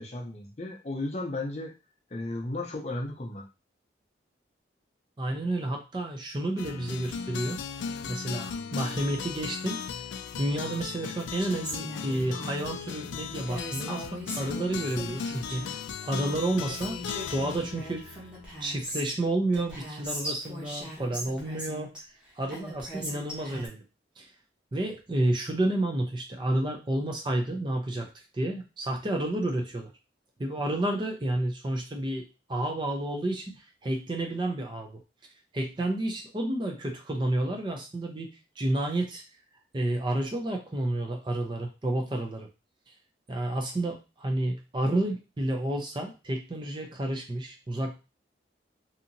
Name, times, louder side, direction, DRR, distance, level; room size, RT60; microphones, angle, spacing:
voice 1, 0.0-1.7 2.1-3.4, left 2 dB, 35° left, 0 dB, 0.6 m, -34 dB
voice 2, 5.2-10.0 10.4-14.0 14.3-15.6 16.0-17.0 17.3-18.2 18.6-21.9 22.4-23.8 24.2-24.3 24.7-29.9 30.4-35.0 35.5-39.2 39.7-42.5 43.3-47.9, right 1 dB, 25° right, 3 dB, 0.4 m, -30 dB
sound 1, 6.6-18.8, left 6 dB, 85° left, 0.3 m, -37 dB
Female speech woman speaking, 11.4-12.6 13.5-15.8 16.4-16.5 16.7-19.2 19.5-22.0 22.5-23.7, equal, 5° right, 0.8 m, -39 dB
2.8 x 2.7 x 2.6 m, 0.29 s
head